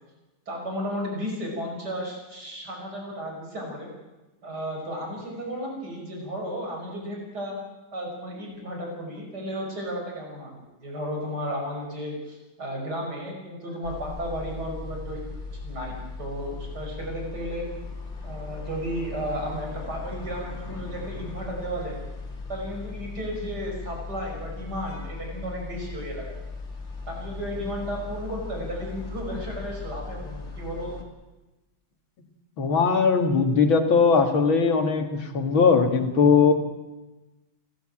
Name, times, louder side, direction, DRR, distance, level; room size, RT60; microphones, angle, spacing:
voice 1, 0.5-3.9 4.4-7.6 7.9-15.2 15.6-17.6 18.2-22.0 22.5-26.4 27.1-31.0, equal, 55° right, 0 dB, 6.1 m, -34 dB
sound 1, 13.8-31.0, left 4 dB, 35° left, 2.6 m, -38 dB
voice 2, 32.6-36.5, left 5 dB, 80° left, 6 dB, 2.6 m, -20 dB
30.0 x 12.0 x 8.8 m, 1.1 s
omnidirectional pair, 2.2 m